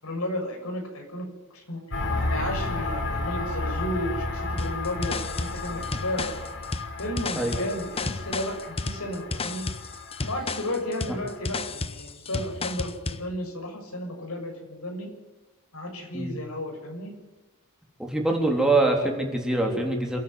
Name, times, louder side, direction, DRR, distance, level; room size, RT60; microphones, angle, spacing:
voice 1, 0.0-1.3 1.5-1.8 2.1-6.3 7.0-9.6 10.2-15.1 15.7-17.1, left 1 dB, 75° left, 2 dB, 6.8 m, -33 dB
sound 1, 1.9-11.4, left 2 dB, 55° left, 5.0 m, -32 dB
sound 2, 4.6-13.3, left 3 dB, 25° left, 0.9 m, -33 dB
voice 2, 18.0-20.2, right 2 dB, 5° right, 0 dB, 3.6 m, -24 dB
28.0 x 10.5 x 9.5 m, 1.1 s
head